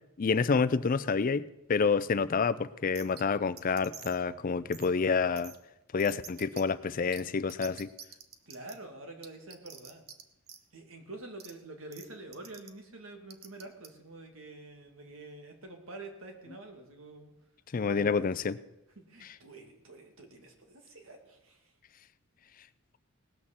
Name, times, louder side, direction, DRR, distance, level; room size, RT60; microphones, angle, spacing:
voice 1, 0.2-5.5 5.9-7.9 17.7-18.6 19.2-19.3, left 5 dB, 40° left, 15 dB, 0.4 m, -28 dB
sound 1, 2.9-3.2 3.6-4.2 4.7-4.9 5.4-5.6 6.0-6.6 7.1-7.2 7.5-8.7 9.2-10.2 10.5-10.6 11.4-11.5 11.9-12.1 12.3-12.7 13.3-13.9, right 8 dB, 45° right, 1.1 m, -47 dB
voice 2, 8.5-10.0 10.7-17.3 17.8-18.2 19.0-21.7, right 2 dB, 70° right, 4 dB, 2.4 m, -47 dB
18.5 x 6.4 x 7.3 m, 0.90 s
head